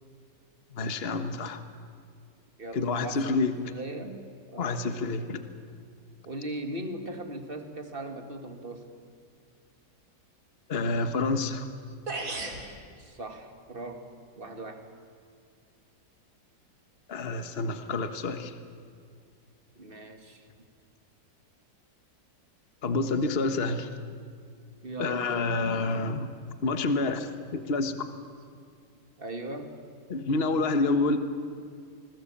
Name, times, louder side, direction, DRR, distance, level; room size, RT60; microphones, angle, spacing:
voice 1, 0.7-1.6 2.7-3.7 4.6-5.4 10.7-11.7 17.1-18.5 22.8-23.9 25.0-26.3 26.6-27.9 30.1-31.2, left 3 dB, 35° left, 9 dB, 1.4 m, -28 dB
voice 2, 2.6-3.4 3.7-4.2 4.5-4.8 6.3-8.9 13.0-14.1 14.4-14.9 19.8-20.5 24.8-25.2 29.2-29.7, right 2 dB, 30° right, 6 dB, 2.3 m, -39 dB
sound 1, 11.7-11.8 12.1-12.6, right 3 dB, 50° right, 3.5 m, -33 dB
26.5 x 20.5 x 8.7 m, 2.3 s
omnidirectional pair, 1.9 m